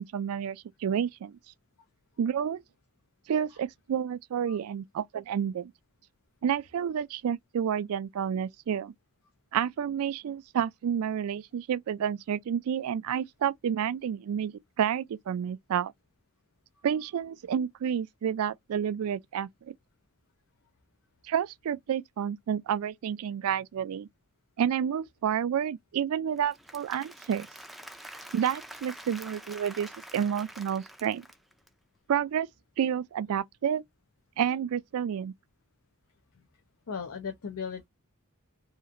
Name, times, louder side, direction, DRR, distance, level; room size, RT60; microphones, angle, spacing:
voice 1, 0.0-1.3 2.2-2.6 3.3-5.7 6.4-8.9 9.5-14.5 14.8-15.9 16.8-19.7 21.2-24.1 24.6-27.5 28.3-31.3 32.1-32.5 32.8-33.8 34.4-35.3, right 8 dB, 75° right, 0.3 m, -30 dB
Applause / Crowd, 26.4-31.7, right 1 dB, ahead, 0.3 m, -46 dB
voice 2, 36.9-37.9, left 6 dB, 75° left, 0.6 m, -37 dB
2.8 x 2.5 x 2.4 m
head